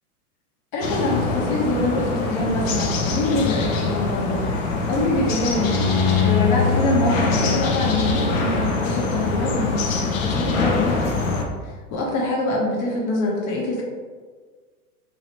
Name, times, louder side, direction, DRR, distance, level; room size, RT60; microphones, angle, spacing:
voice 1, 0.7-4.5 4.9-5.9 6.2-11.3 11.6-13.8, left 1 dB, 40° left, -2 dB, 1.0 m, -25 dB
sound 1, 0.8-11.5, left 3 dB, 60° left, 0.7 m, -24 dB
Bowed string instrument, 5.5-10.5, left 5 dB, 15° left, 0.6 m, -25 dB
2.9 x 2.9 x 3.0 m, 1.5 s
hypercardioid pair, 115°, 45 cm